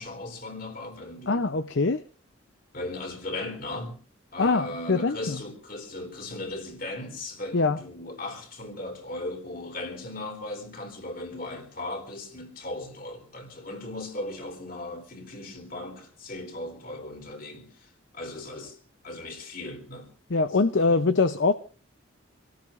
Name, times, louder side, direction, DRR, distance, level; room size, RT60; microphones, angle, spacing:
voice 1, 0.0-1.5 2.7-4.0 4.3-18.8 19.0-20.1 20.7-21.1, left 2 dB, 45° left, 3.6 m, -37 dB
voice 2, 1.3-2.0 4.4-5.4 7.5-7.8 20.3-21.5, left 3 dB, 60° left, 0.7 m, -23 dB
27.5 x 17.5 x 2.6 m
head